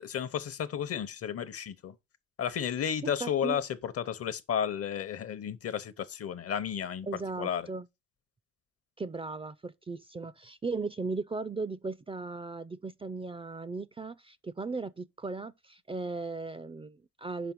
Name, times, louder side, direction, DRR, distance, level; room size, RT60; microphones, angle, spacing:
voice 1, 0.0-1.9 2.4-7.1 7.4-7.7, left 8 dB, 50° left, 0.8 m, -33 dB
voice 2, 3.0-3.6 7.1-7.9 9.0-17.5, right 3 dB, 20° right, 0.4 m, -37 dB
5.3 x 5.1 x 6.0 m
cardioid pair, 90°, 30 cm